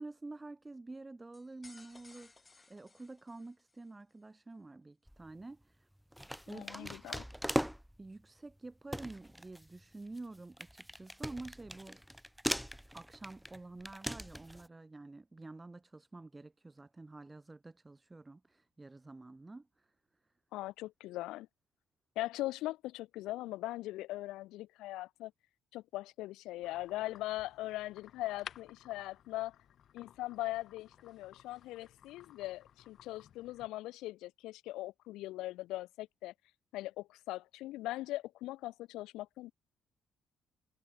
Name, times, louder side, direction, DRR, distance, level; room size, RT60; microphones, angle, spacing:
voice 1, 0.0-2.3 2.7-5.9 6.5-7.1 8.0-12.0 12.9-19.9, right 2 dB, 20° right, 1.2 m, -49 dB
sound 1, 1.3-3.9, left 3 dB, 25° left, 1.8 m, -60 dB
sound 2, 5.1-5.4 6.1-8.1 8.5-8.6 8.9-14.7, equal, ahead, 0.6 m, -40 dB
voice 2, 6.5-7.2 20.5-21.5 22.2-25.3 25.7-29.6 29.9-36.3 36.7-39.5, left 17 dB, 90° left, 0.9 m, -40 dB
sound 3, 26.6-33.7, left 9 dB, 65° left, 1.0 m, -56 dB
cardioid pair, 80°, 0 cm